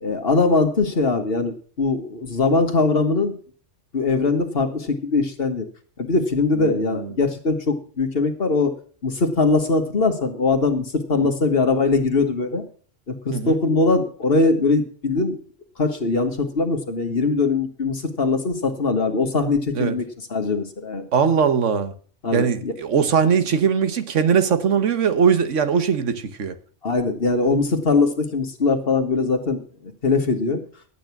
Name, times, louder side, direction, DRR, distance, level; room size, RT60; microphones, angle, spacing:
voice 1, 0.0-3.3 3.9-5.7 6.0-8.7 9.0-12.6 13.1-15.4 15.8-20.1 20.3-21.1 22.2-22.7 26.8-30.6, left 3 dB, 50° left, 1.8 m, -21 dB
voice 2, 6.6-7.1 11.2-11.3 13.3-13.6 19.7-20.0 21.1-21.9 22.3-26.6, right 6 dB, 90° right, 1.5 m, -20 dB
12.0 x 9.0 x 6.0 m
omnidirectional pair, 1.2 m